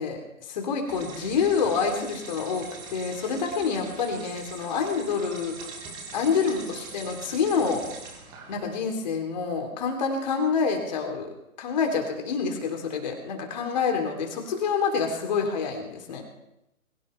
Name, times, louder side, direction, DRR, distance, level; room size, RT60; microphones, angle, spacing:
voice 1, 0.0-5.6 6.1-7.8 8.5-11.3 11.6-16.2, left 5 dB, 30° left, 3 dB, 3.5 m, -27 dB
sound 1, 0.9-8.8, right 4 dB, 10° right, 1.4 m, -42 dB
22.0 x 17.0 x 3.5 m, 0.89 s
figure-of-eight pair, 145°, 42 cm